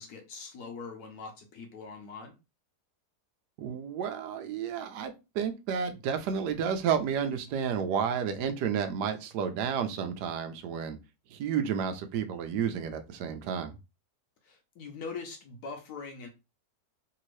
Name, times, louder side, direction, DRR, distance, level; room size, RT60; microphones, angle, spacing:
voice 1, 0.0-2.3 14.4-16.3, left 4 dB, 70° left, 1.2 m, -42 dB
voice 2, 3.6-11.0 11.3-13.7, right 7 dB, 85° right, 1.2 m, -31 dB
3.3 x 2.8 x 3.0 m
omnidirectional pair, 1.7 m